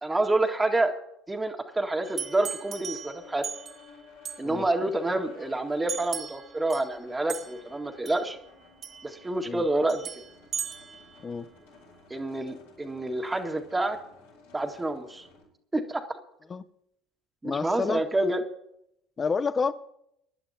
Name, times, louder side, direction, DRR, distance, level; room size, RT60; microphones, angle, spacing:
voice 1, 0.0-0.9 1.3-3.4 4.4-8.4 9.0-10.1 12.1-14.0 14.5-15.3 15.7-16.0 17.4-18.4, right 2 dB, 15° right, 3 dB, 1.9 m, -28 dB
sound 1, 2.0-15.4, left 4 dB, 85° left, 7.2 m, -54 dB
sound 2, 2.0-3.9 4.3-4.5 5.9-7.0 7.3-7.8 8.1-8.3 8.8-9.3 9.9-11.2, right 7 dB, 45° right, 2.2 m, -38 dB
voice 2, 17.4-18.0 19.2-19.7, left 5 dB, 30° left, 14 dB, 0.8 m, -29 dB
24.0 x 11.5 x 2.9 m, 0.75 s
hypercardioid pair, 70°, 0 cm